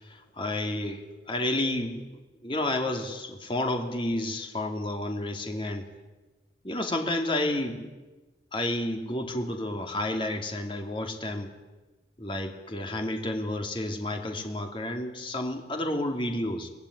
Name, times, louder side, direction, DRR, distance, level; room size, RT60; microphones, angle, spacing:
voice 1, 0.1-1.0 1.3-2.1 2.4-5.9 6.6-7.9 8.5-11.5 12.2-16.7, left 1 dB, 30° left, 3 dB, 2.9 m, -30 dB
24.0 x 19.5 x 10.0 m, 1.2 s
head